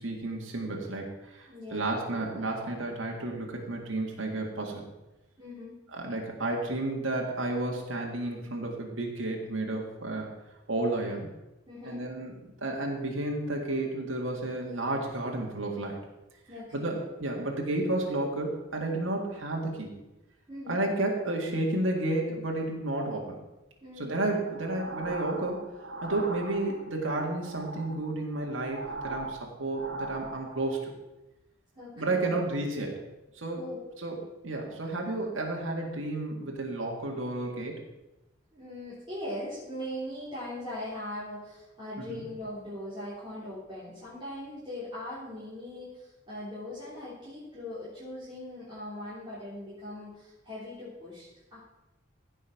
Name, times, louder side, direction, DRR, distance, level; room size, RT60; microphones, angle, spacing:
voice 1, 0.0-4.8 5.9-10.3 10.7-11.3 11.8-16.0 16.7-20.0 20.7-23.4 24.0-30.9 32.0-32.9 33.3-33.7 34.0-34.2 34.4-37.8 42.1-42.2, right 2 dB, 90° right, 0 dB, 1.9 m, -32 dB
voice 2, 1.5-2.0 5.4-5.8 11.7-12.0 16.5-17.0 20.5-20.8 23.8-24.1 31.7-32.4 33.5-33.8 38.5-51.6, left 1 dB, 25° right, -10 dB, 3.4 m, -40 dB
sound 1, 24.4-27.0 27.3-30.9, right 1 dB, 70° right, 1.5 m, -40 dB
15.5 x 5.5 x 5.9 m, 1.0 s
head